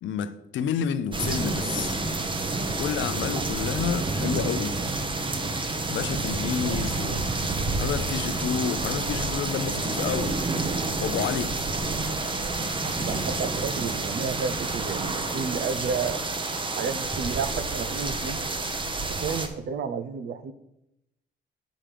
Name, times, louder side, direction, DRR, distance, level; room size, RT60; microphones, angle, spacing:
voice 1, 0.0-2.0 2.8-4.8 5.9-7.3 7.8-10.4 11.0-11.5, left 8 dB, 75° left, 0.6 m, -30 dB
sound 1, 1.1-19.5, right 3 dB, 25° right, 0.9 m, -29 dB
voice 2, 12.8-16.3 16.7-18.4 19.2-20.5, right 6 dB, 60° right, 0.7 m, -31 dB
7.4 x 5.1 x 5.0 m
cardioid pair, 90°, 20 cm